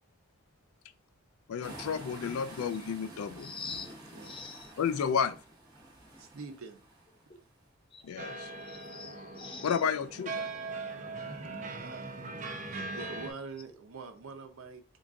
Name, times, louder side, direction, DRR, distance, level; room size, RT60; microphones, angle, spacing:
voice 1, 1.5-3.5 4.8-5.3 8.0-8.5 9.6-10.5, left 7 dB, 80° left, 0.4 m, -31 dB
sound 1, 1.6-7.5, right 1 dB, 20° right, 1.0 m, -49 dB
voice 2, 3.4-4.7 7.3-7.4 7.9-9.9 13.7-13.8, left 4 dB, 25° left, 0.5 m, -45 dB
voice 3, 4.1-4.5 6.2-6.8 11.6-12.4 12.7-15.0, right 4 dB, 75° right, 0.6 m, -45 dB
sound 2, 8.2-13.3, right 3 dB, 35° right, 0.5 m, -40 dB
3.7 x 2.3 x 3.6 m
head